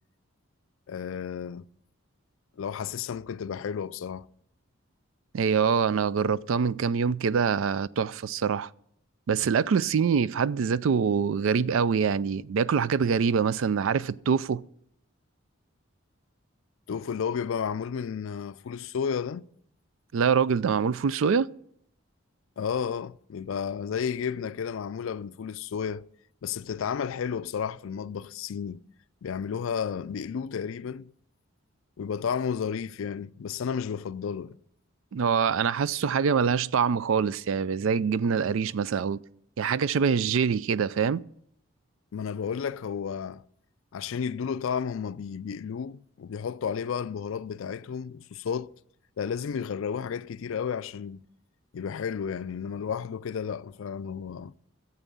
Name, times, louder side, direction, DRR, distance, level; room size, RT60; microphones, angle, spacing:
voice 1, 0.9-1.6 2.6-4.3 16.9-19.5 22.6-26.1 26.4-28.8 29.2-31.1 32.0-34.6 42.1-43.4 43.9-48.7 49.2-51.2 51.7-54.5, left 7 dB, 70° left, 0.4 m, -32 dB
voice 2, 5.3-8.7 9.3-14.6 20.1-21.5 35.1-39.2 39.6-41.3, right 6 dB, 70° right, 0.4 m, -25 dB
11.0 x 8.0 x 6.9 m
head